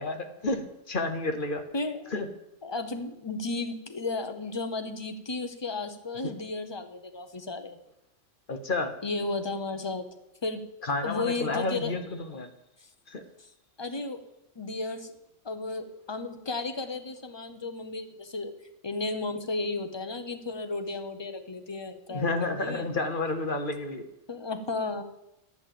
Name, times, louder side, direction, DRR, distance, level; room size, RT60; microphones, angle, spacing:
voice 1, 0.0-1.6 2.1-2.3 6.2-6.3 8.5-8.9 10.8-12.5 13.1-13.2 22.1-24.1, left 2 dB, 45° left, 7 dB, 1.1 m, -30 dB
voice 2, 1.7-2.1 2.6-7.8 9.0-10.1 10.4-10.6 11.0-11.9 13.8-14.2 14.6-15.1 15.4-18.5 18.8-22.8 24.3-25.0, left 3 dB, 25° left, 7 dB, 0.8 m, -33 dB
11.0 x 6.6 x 7.7 m, 0.87 s
omnidirectional pair, 1.3 m